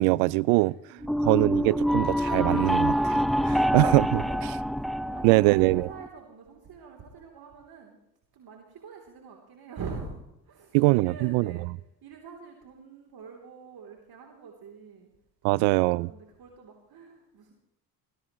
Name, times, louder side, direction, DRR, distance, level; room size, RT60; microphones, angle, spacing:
voice 1, 0.0-0.7 1.2-4.2 5.2-5.9 10.7-11.5 15.4-16.1, right 22 dB, 80° right, 0.5 m, -22 dB
voice 2, 0.6-1.7 3.5-4.7 5.0-8.0 8.3-11.6 12.0-15.1 15.4-17.5, right 5 dB, 55° right, 3.3 m, -45 dB
sound 1, 1.0-6.1, equal, ahead, 0.5 m, -26 dB
20.0 x 16.0 x 3.1 m
supercardioid pair, 70°, 45 cm